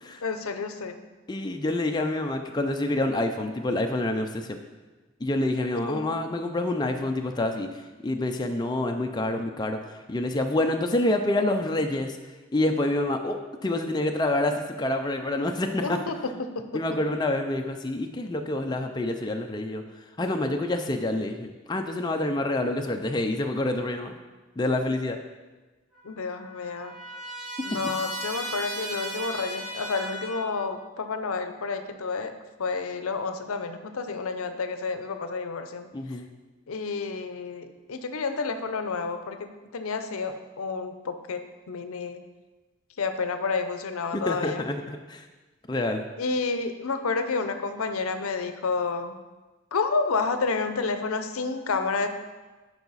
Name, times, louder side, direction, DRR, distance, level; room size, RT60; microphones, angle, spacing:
voice 1, 0.2-1.0 5.7-6.1 15.8-16.8 26.0-26.9 27.6-35.9 36.7-41.4 41.7-42.2 43.0-44.6 46.2-49.2 49.7-52.1, left 4 dB, 90° left, 8 dB, 0.6 m, -30 dB
voice 2, 1.3-4.6 5.2-7.7 8.0-9.8 10.1-12.2 12.5-16.0 16.7-19.8 20.2-24.2 24.6-25.2 27.6-27.7 35.9-36.3 44.1-45.2 45.7-46.1, left 1 dB, 20° left, 4 dB, 0.4 m, -27 dB
Trumpet, 25.9-30.6, right 1 dB, ahead, 2.3 m, -36 dB
11.5 x 4.8 x 4.1 m, 1.2 s
head